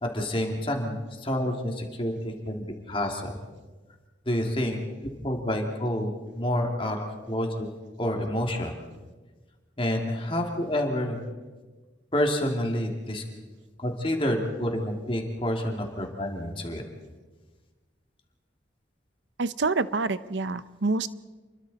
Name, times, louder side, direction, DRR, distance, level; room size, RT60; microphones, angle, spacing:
voice 1, 0.0-3.3 4.3-4.8 5.2-7.7 8.0-8.7 9.8-11.2 12.1-13.2 13.8-16.8, left 1 dB, 30° left, 2 dB, 2.6 m, -28 dB
voice 2, 19.4-21.1, right 3 dB, 75° right, 14 dB, 0.8 m, -27 dB
29.0 x 23.0 x 4.2 m, 1.3 s
head